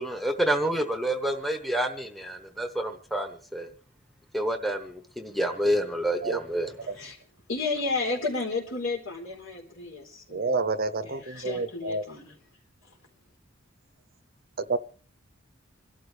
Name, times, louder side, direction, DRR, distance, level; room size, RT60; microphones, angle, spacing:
voice 1, 0.0-3.7 4.3-6.7, right 1 dB, ahead, 7 dB, 0.9 m, -28 dB
voice 2, 6.8-7.2 7.5-10.5 11.1-12.4, left 3 dB, 75° left, 1 dB, 3.9 m, -32 dB
voice 3, 10.3-12.0 14.6-14.8, right 3 dB, 50° right, 14 dB, 0.7 m, -29 dB
27.0 x 12.5 x 3.3 m, 0.42 s
head